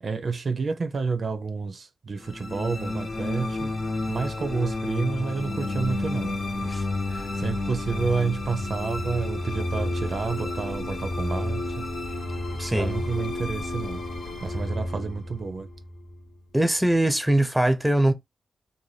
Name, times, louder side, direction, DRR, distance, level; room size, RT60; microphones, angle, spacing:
voice 1, 0.0-3.7 4.1-6.4 7.4-11.9 12.7-14.0 14.4-15.7, right 4 dB, 60° right, 0.4 m, -29 dB
sound 1, 2.2-16.6, left 2 dB, 75° left, 0.8 m, -31 dB
voice 2, 12.6-13.0 16.5-18.1, right 1 dB, 5° right, 0.6 m, -22 dB
2.6 x 2.1 x 3.2 m
cardioid pair, 55°, 0 cm